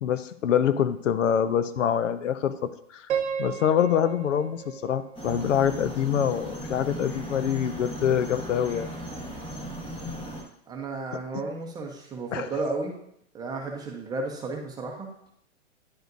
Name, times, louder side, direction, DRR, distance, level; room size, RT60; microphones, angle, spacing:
voice 1, 0.0-3.0 3.4-8.9 12.3-12.4, left 9 dB, 80° left, 12 dB, 0.7 m, -25 dB
Piano, 3.1-6.1, right 7 dB, 65° right, 0.9 m, -34 dB
sound 1, 5.1-10.4, right 1 dB, 15° left, 1.2 m, -37 dB
voice 2, 10.7-12.9 13.3-15.1, right 3 dB, 10° right, 1 dB, 0.8 m, -33 dB
10.5 x 5.0 x 2.6 m, 0.71 s
hypercardioid pair, 140°, 37 cm